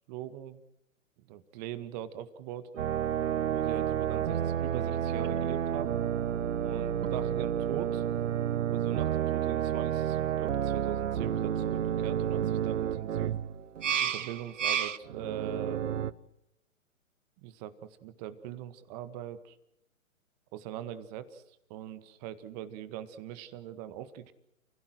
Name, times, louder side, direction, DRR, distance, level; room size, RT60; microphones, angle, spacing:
voice 1, 0.1-0.6 1.3-2.7 3.5-6.0 6.6-8.0 8.7-13.4 14.0-16.1 17.4-19.6 20.5-21.4 21.7-24.3, right 11 dB, 30° right, 13 dB, 1.8 m, -41 dB
sound 1, 2.8-16.1, right 10 dB, 65° right, 1.1 m, -30 dB
29.5 x 16.5 x 7.8 m, 0.82 s
figure-of-eight pair, 125°, 41 cm